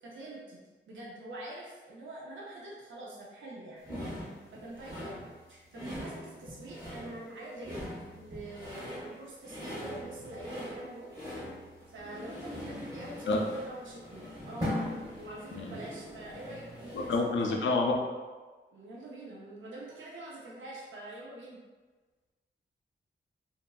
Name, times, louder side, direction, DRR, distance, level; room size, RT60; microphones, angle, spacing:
voice 1, 0.0-3.8 4.5-5.2 5.5-7.8 8.2-11.1 11.9-14.9 15.2-17.7 18.7-21.6, right 1 dB, 85° right, -5 dB, 0.6 m, -45 dB
sound 1, 3.8-17.3, equal, 20° right, 0.9 m, -41 dB
voice 2, 16.9-18.0, left 3 dB, 80° left, 1 dB, 0.4 m, -28 dB
2.8 x 2.5 x 2.2 m, 1.3 s
wide cardioid pair, 170°, 19 cm